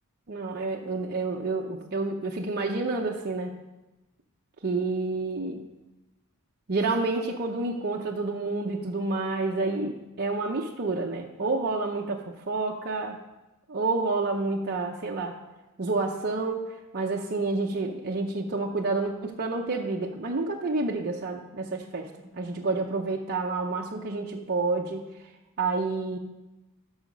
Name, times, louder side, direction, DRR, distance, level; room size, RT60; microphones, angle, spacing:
voice 1, 0.3-3.6 4.6-5.6 6.7-13.2 13.7-15.4 15.8-16.7 16.9-25.0 25.6-26.2, right 3 dB, 45° right, -1 dB, 0.7 m, -29 dB
11.5 x 6.4 x 5.2 m, 1.0 s
head